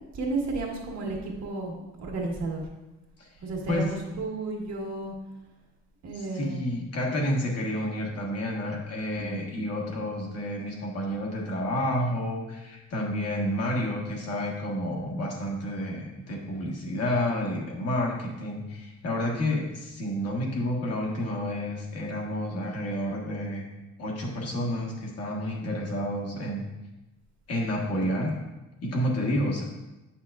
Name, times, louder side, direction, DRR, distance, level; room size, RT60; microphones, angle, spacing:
voice 1, 0.1-2.6 3.4-5.1 6.0-6.7 9.2-9.7, right 3 dB, 60° right, -1 dB, 1.5 m, -33 dB
voice 2, 6.1-23.7 24.0-26.6 27.5-28.3 28.8-29.6, left 1 dB, 55° left, -2 dB, 1.4 m, -30 dB
8.8 x 5.8 x 2.4 m, 1.0 s
cardioid pair, 165°, 30 cm